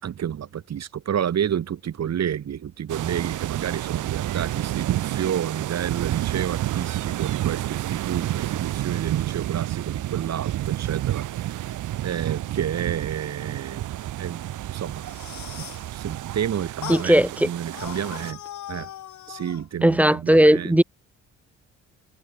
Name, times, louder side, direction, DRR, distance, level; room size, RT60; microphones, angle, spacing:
voice 1, 0.0-11.7 12.0-13.9 14.2-15.1 15.5-18.4 18.7-18.9 19.3-20.8, right 9 dB, 60° right, 5.3 m, -30 dB
sound 1, 2.9-18.3, right 14 dB, 80° right, 4.6 m, -30 dB
sound 2, 14.9-15.9 16.8-17.1 17.7-19.7, left 12 dB, 70° left, 2.8 m, -39 dB
voice 2, 16.9-17.5 19.8-20.8, right 1 dB, 5° right, 0.7 m, -17 dB
cardioid pair, 90°, 30 cm